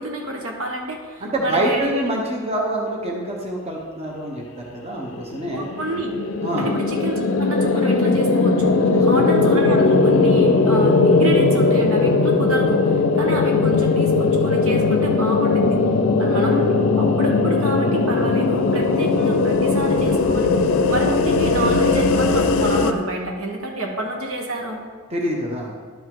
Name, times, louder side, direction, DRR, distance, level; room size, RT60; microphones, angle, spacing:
voice 1, 0.0-2.3 5.5-6.1 6.6-15.8 16.2-20.5 20.9-24.8, right 1 dB, 80° right, 1 dB, 1.3 m, -28 dB
voice 2, 1.2-5.6 6.4-6.7 8.9-9.2 25.1-25.7, right 1 dB, 30° right, 0 dB, 0.9 m, -26 dB
sound 1, 5.2-22.9, left 3 dB, 65° left, 0.5 m, -18 dB
11.5 x 5.4 x 3.8 m, 1.5 s
head